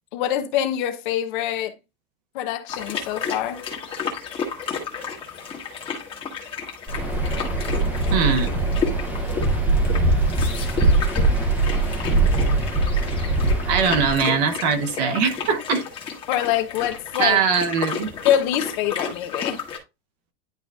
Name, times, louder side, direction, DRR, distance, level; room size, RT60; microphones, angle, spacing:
voice 1, 0.1-1.7 2.3-3.6 16.3-17.4 18.2-19.6, left 11 dB, 50° left, 0.9 m, -24 dB
sound 1, 2.7-19.8, left 6 dB, 15° left, 1.3 m, -32 dB
Waves surf, 6.9-14.2, right 2 dB, 5° right, 0.8 m, -22 dB
voice 2, 8.1-8.6 13.7-15.8 17.2-18.1, right 6 dB, 45° right, 1.0 m, -21 dB
10.5 x 3.9 x 2.4 m
supercardioid pair, 175°, 31 cm